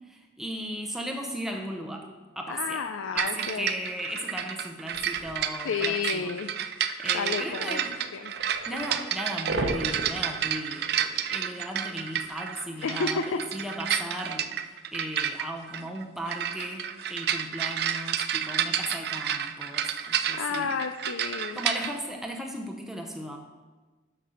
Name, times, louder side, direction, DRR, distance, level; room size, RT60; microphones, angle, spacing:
voice 1, 0.0-2.1 2.4-2.9 3.1-6.3 7.0-7.9 8.7-14.5 14.9-20.7 21.5-23.4, equal, ahead, 1 dB, 0.6 m, -36 dB
voice 2, 2.5-3.7 5.6-6.5 7.1-7.8 8.1-8.3 12.8-13.2 20.4-21.6, left 5 dB, 90° left, 7 dB, 0.4 m, -31 dB
sound 1, 3.2-21.9, right 9 dB, 55° right, 0.4 m, -31 dB
sound 2, 4.9-5.4 6.7-6.8 7.1-7.2 7.5-9.1 9.5-11.1 11.3-11.4 12.2-12.3 14.4-14.5, right 2 dB, 75° right, 0.9 m, -35 dB
6.7 x 6.0 x 6.2 m, 1.3 s
head